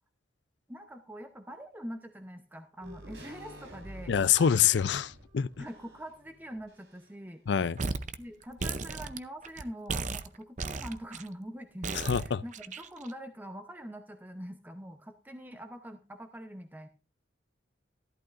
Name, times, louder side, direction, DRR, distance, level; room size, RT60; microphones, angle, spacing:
voice 1, 0.7-4.6 5.6-7.4 8.2-16.9, equal, 10° right, 0.8 m, -44 dB
sound 1, 2.8-7.3 7.6-7.7, equal, 70° right, 4.1 m, -50 dB
voice 2, 4.1-5.6 7.5-7.7 11.9-12.4, left 8 dB, 70° left, 0.4 m, -26 dB
sound 2, 7.8-8.2 8.4-9.6 9.9-11.3 11.8-13.1, right 4 dB, 40° right, 0.6 m, -35 dB
14.0 x 12.0 x 2.5 m
head